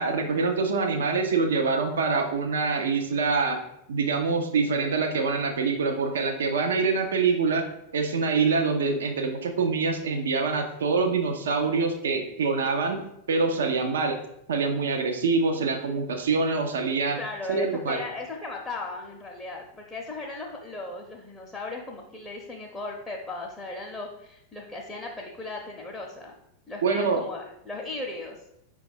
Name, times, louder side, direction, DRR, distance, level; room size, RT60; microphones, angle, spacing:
voice 1, 0.0-3.6 3.9-7.6 7.9-13.0 13.3-14.2 14.5-17.2 17.5-18.0 26.8-27.2, right 4 dB, 65° right, 4 dB, 0.4 m, -25 dB
voice 2, 17.1-26.3 26.7-28.4, left 3 dB, 10° left, -2 dB, 0.6 m, -37 dB
5.1 x 2.3 x 4.4 m, 0.80 s
figure-of-eight pair, 90°, 0 cm